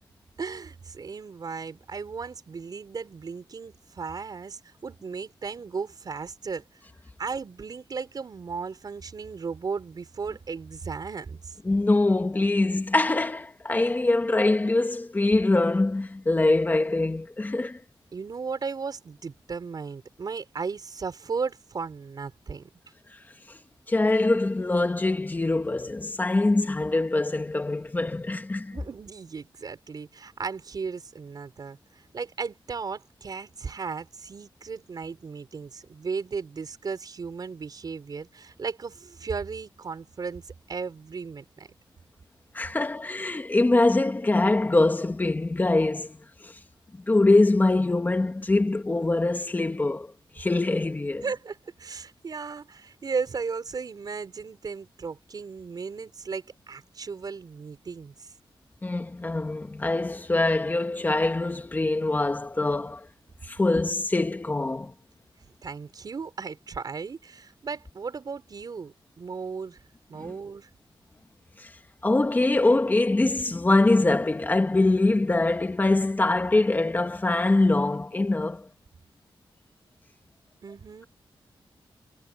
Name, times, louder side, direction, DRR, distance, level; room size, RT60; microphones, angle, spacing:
voice 1, 0.4-6.6 7.2-11.6 18.1-22.7 28.7-41.7 51.2-58.3 65.4-69.8 70.1-70.7 80.6-81.1, right 5 dB, 45° right, 5.2 m, -35 dB
voice 2, 11.6-17.8 23.9-28.8 42.5-46.2 46.4-46.5 47.1-51.2 58.8-63.1 63.4-64.9 70.2-70.3 71.6-71.7 72.0-78.7, left 2 dB, 20° left, 2.0 m, -23 dB
wide cardioid pair, 160°, 9 cm